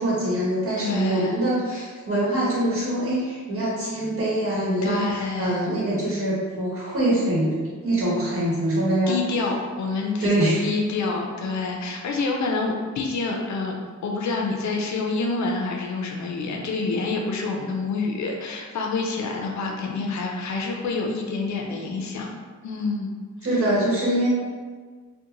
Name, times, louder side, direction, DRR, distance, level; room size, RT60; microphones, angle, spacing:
voice 1, 0.0-9.2 10.2-10.6 23.4-24.3, right 1 dB, 45° right, -8 dB, 1.1 m, -24 dB
voice 2, 0.8-1.3 1.7-1.9 4.8-5.6 9.1-10.4 10.6-22.3 22.6-23.1, left 3 dB, 65° left, 1 dB, 0.5 m, -27 dB
2.8 x 2.2 x 2.5 m, 1.5 s
cardioid pair, 95°, 30 cm